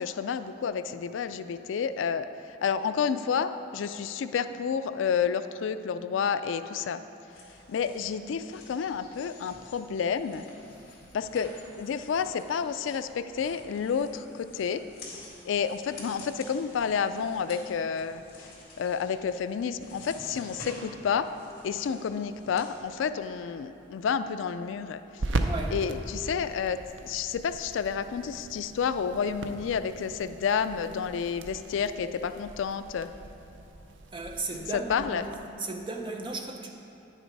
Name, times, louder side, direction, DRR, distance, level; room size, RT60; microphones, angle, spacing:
voice 1, 0.0-2.3 2.6-7.0 7.7-10.4 11.1-14.8 15.5-18.2 18.8-21.3 21.6-25.0 25.7-26.8 27.0-33.1 34.9-35.2, left 6 dB, 75° left, 12 dB, 0.3 m, -30 dB
sound 1, 7.3-23.1, left 2 dB, 50° left, 2.2 m, -50 dB
sound 2, 23.2-35.3, right 2 dB, 70° right, 0.5 m, -39 dB
voice 2, 25.4-25.7 34.1-35.3 35.6-36.7, right 3 dB, 25° right, 2 dB, 0.7 m, -35 dB
9.9 x 6.6 x 4.6 m, 2.9 s
head